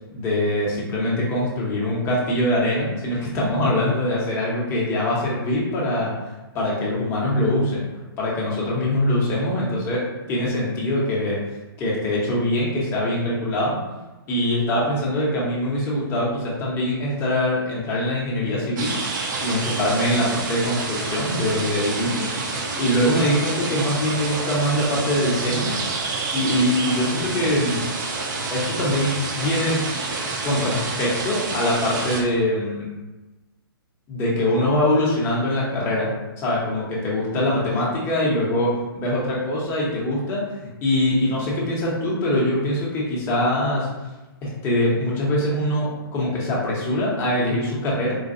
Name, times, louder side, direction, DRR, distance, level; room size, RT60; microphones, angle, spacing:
voice 1, 0.1-6.1 6.5-7.9 8.2-11.4 11.8-13.8 14.3-18.9 19.4-22.3 22.7-25.7 26.3-27.8 28.5-29.9 30.4-32.9 34.1-43.9 44.4-48.2, left 1 dB, 20° left, -5 dB, 0.8 m, -23 dB
sound 1, 18.8-32.2, right 3 dB, 50° right, 0.6 m, -28 dB
3.9 x 2.1 x 2.6 m, 1.1 s
hypercardioid pair, 145°, 13 cm